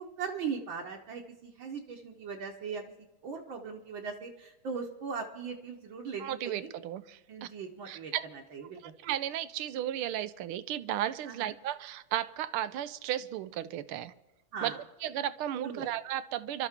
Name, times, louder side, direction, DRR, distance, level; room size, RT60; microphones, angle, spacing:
voice 1, 0.0-2.8 3.2-6.7 7.3-8.1 8.5-8.9 11.3-11.5 14.5-14.8 15.6-15.9, right 5 dB, 70° right, 1 dB, 1.9 m, -39 dB
voice 2, 6.2-7.5 7.9-8.2 8.8-14.1 14.6-16.7, right 12 dB, 85° right, 14 dB, 1.6 m, -34 dB
25.5 x 13.0 x 3.6 m, 1.0 s
omnidirectional pair, 2.3 m